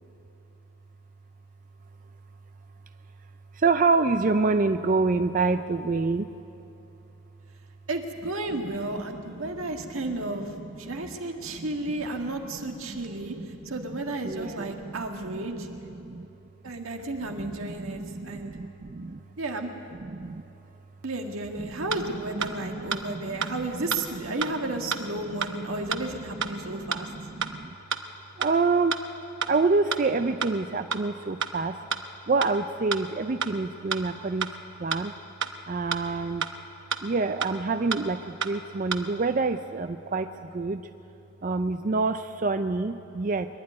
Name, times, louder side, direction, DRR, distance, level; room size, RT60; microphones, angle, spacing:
voice 1, 3.5-6.3 9.3-9.5 10.9-11.0 11.6-11.7 12.8-13.0 13.4-13.5 13.9-15.0 15.6-16.3 17.4-19.2 20.0-20.4 21.6-21.9 22.2-23.8 25.9-26.0 26.5-27.7 28.4-29.0 29.5-31.8 32.3-34.5 34.8-35.1 35.7-36.4 37.0-40.8 41.4-43.5, right 3 dB, 40° right, 9 dB, 0.4 m, -27 dB
voice 2, 7.9-13.4 13.7-15.7 16.6-18.6 19.4-19.7 21.0-27.1, right 2 dB, 80° right, 3 dB, 1.8 m, -33 dB
sound 1, 21.9-22.0 22.4-22.5 22.9-23.0 23.4-23.5 23.9-24.0 24.4-24.5 24.9-25.0 25.4-25.5 25.9-26.0 26.4-26.5 26.9-27.0 27.4-27.5 27.9-28.0 28.4-28.5 28.9-29.0 29.4-29.5 29.9-30.0 30.4-30.5 30.9-31.0 31.4-31.5 31.9-32.0 32.4-32.5 32.9-33.0 33.4-33.5 33.9-34.0 34.4-34.5 34.9-35.0 35.4-35.5 35.9-36.0 36.4-36.5 36.9-37.0 37.4-37.5 37.9-38.0 38.4-38.5 38.9-39.0, right 6 dB, 60° right, 0.9 m, -29 dB
23.0 x 12.0 x 9.6 m, 2.8 s
head